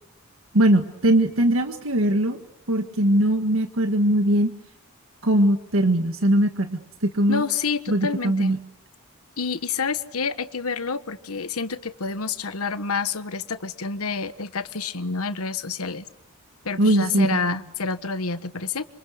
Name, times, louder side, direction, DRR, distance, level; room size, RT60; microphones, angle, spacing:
voice 1, 0.5-2.4 2.7-4.5 5.2-7.4 7.9-8.6 16.8-17.3, right 1 dB, 65° right, 7 dB, 1.6 m, -20 dB
voice 2, 7.3-8.6 9.4-16.0 16.6-18.9, left 5 dB, 85° left, 12 dB, 1.4 m, -28 dB
26.5 x 26.5 x 8.0 m, 0.84 s
head